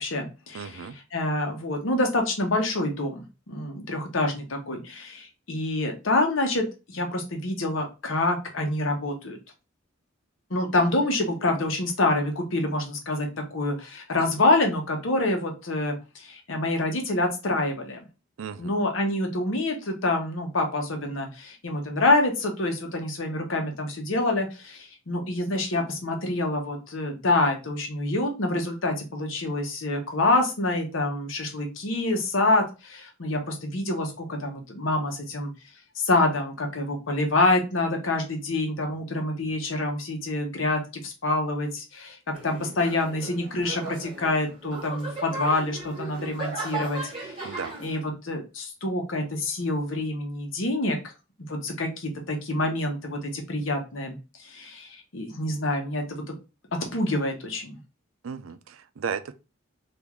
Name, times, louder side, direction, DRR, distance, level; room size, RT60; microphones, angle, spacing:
voice 1, 0.0-0.9 1.1-9.4 10.5-18.0 18.6-35.5 35.9-42.2 42.4-51.0 51.5-54.2 54.4-56.0 56.9-57.8, left 2 dB, 75° left, 0.9 m, -27 dB
voice 2, 0.5-1.0 18.4-18.7 47.4-47.7 58.2-59.3, right 6 dB, 80° right, 0.4 m, -35 dB
sound 1, 42.3-48.0, right 3 dB, 25° right, 1.2 m, -37 dB
3.6 x 2.6 x 3.0 m
head